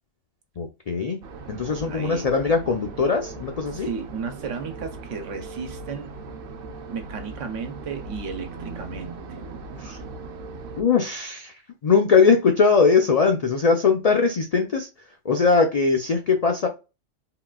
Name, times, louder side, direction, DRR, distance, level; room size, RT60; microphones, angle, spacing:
voice 1, 0.6-1.2 1.5-3.9 9.8-10.0 10.8-14.9 15.2-16.7, left 5 dB, 70° left, 0.3 m, -20 dB
sound 1, 1.2-10.8, right 3 dB, 60° right, 0.7 m, -39 dB
voice 2, 1.9-2.3 3.8-6.2 6.9-9.4, right 5 dB, 80° right, 1.1 m, -34 dB
3.8 x 2.3 x 2.2 m
omnidirectional pair, 1.2 m